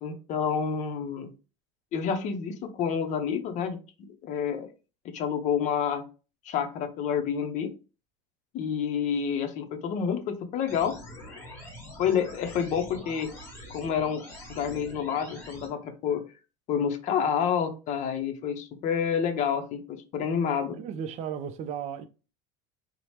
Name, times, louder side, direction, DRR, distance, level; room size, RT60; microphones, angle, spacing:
voice 1, 0.0-1.3 1.9-4.7 5.1-6.0 6.5-7.7 8.5-10.9 12.0-13.3 13.7-14.2 14.5-16.2 16.7-20.8, left 7 dB, 50° left, 0.5 m, -28 dB
sound 1, 10.7-15.7, left 1 dB, 15° left, 1.1 m, -44 dB
voice 2, 20.7-22.1, right 8 dB, 45° right, 0.4 m, -35 dB
2.8 x 2.0 x 3.1 m
supercardioid pair, 105°, 16 cm